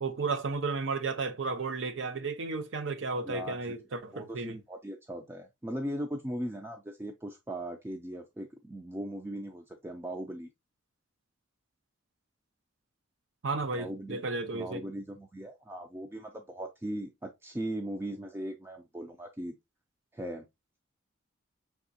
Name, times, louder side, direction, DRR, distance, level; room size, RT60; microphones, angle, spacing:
voice 1, 0.0-4.6 13.4-14.8, right 4 dB, 70° right, 0.6 m, -33 dB
voice 2, 3.2-10.5 13.7-14.2 14.5-19.6 20.1-20.4, right 1 dB, 10° right, 0.3 m, -39 dB
4.9 x 3.5 x 2.6 m
head